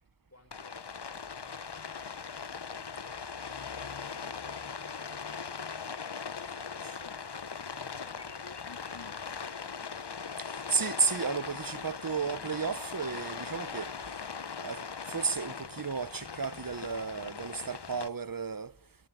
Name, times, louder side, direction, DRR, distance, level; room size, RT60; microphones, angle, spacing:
voice 1, 0.3-3.3 3.7-9.7, left 1 dB, 35° left, 5.1 m, -59 dB
Rain, 0.5-18.1, left 6 dB, 60° left, 1.2 m, -40 dB
voice 2, 10.7-13.9 14.6-14.8 15.1-18.7, right 5 dB, 50° right, 1.1 m, -33 dB
29.5 x 22.5 x 9.1 m
wide cardioid pair, 40°, 45 cm